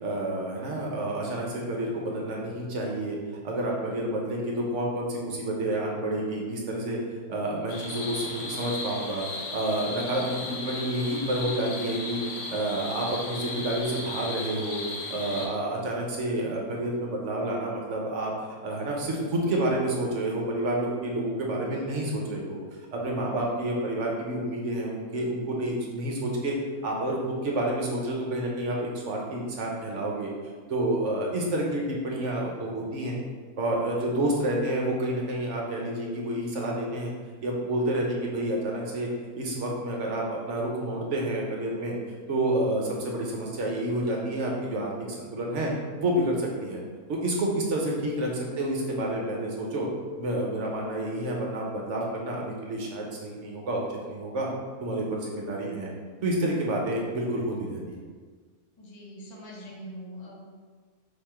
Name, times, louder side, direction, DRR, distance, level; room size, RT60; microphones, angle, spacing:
voice 1, 0.0-3.2 3.4-7.0 7.3-12.2 12.5-14.8 15.1-18.3 18.6-22.6 22.9-26.6 26.8-27.2 27.4-30.3 30.7-33.2 33.6-37.1 37.4-39.1 39.3-41.9 42.3-44.9 45.2-45.7 46.0-46.8 47.1-49.9 50.2-54.5 54.8-55.9 56.2-58.0, right 1 dB, 60° right, -2 dB, 1.0 m, -29 dB
sound 1, 7.7-15.5, left 2 dB, 60° left, 1.0 m, -36 dB
voice 2, 55.2-55.7 58.8-60.4, equal, 30° left, -3 dB, 0.6 m, -45 dB
4.1 x 2.8 x 4.3 m, 1.5 s
omnidirectional pair, 1.6 m